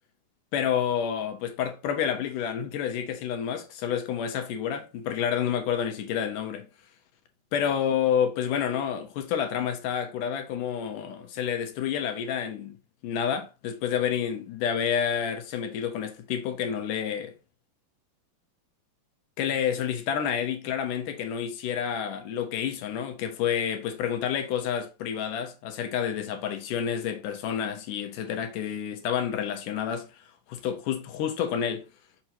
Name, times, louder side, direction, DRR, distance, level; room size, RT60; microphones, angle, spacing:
voice 1, 0.5-6.7 7.5-12.8 13.0-17.3 19.4-30.1 30.5-31.8, left 8 dB, 70° left, 2.2 m, -29 dB
6.2 x 5.9 x 2.8 m
omnidirectional pair, 4.4 m